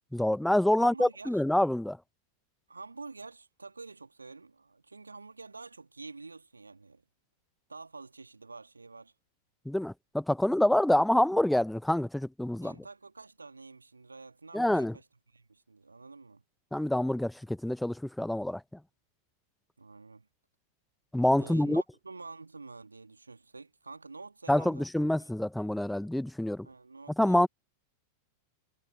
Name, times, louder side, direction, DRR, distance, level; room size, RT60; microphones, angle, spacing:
voice 1, 0.1-2.0 9.7-12.7 14.5-14.9 16.7-18.6 21.1-21.8 24.5-26.7 27.2-27.5, left 1 dB, 5° left, 0.9 m, -26 dB
voice 2, 0.8-1.4 2.7-7.0 7.7-9.1 12.6-16.4 19.8-20.3 21.4-24.8 26.6-27.5, right 3 dB, 80° right, 2.4 m, -48 dB
figure-of-eight pair, 90°, 0 cm